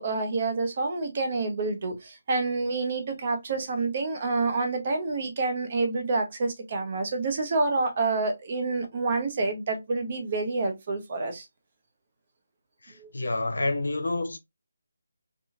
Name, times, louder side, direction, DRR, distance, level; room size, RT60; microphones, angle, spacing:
voice 1, 0.0-11.4 13.0-13.1, right 3 dB, 40° right, 0.8 m, -28 dB
voice 2, 12.8-14.4, left 2 dB, 70° left, 0.7 m, -29 dB
3.1 x 2.3 x 2.4 m
figure-of-eight pair, 155°, 0 cm